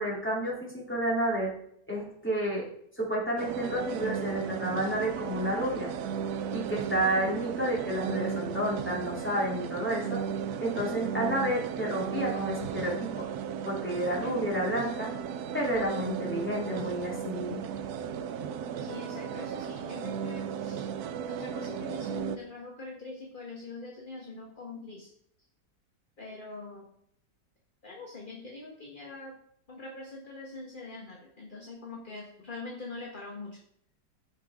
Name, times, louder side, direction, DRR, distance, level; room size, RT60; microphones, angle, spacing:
voice 1, 0.0-1.5 1.9-2.6 3.0-5.9 6.5-10.2 10.6-13.3 13.6-15.1 15.5-17.6, equal, 5° left, -4 dB, 2.9 m, -30 dB
sound 1, 3.4-22.4, right 7 dB, 70° right, 1.1 m, -35 dB
voice 2, 18.8-20.9 21.3-25.1 26.2-26.9 27.8-29.4 29.7-33.6, left 2 dB, 30° left, -1 dB, 1.5 m, -43 dB
15.5 x 5.6 x 3.6 m, 0.70 s
omnidirectional pair, 1.9 m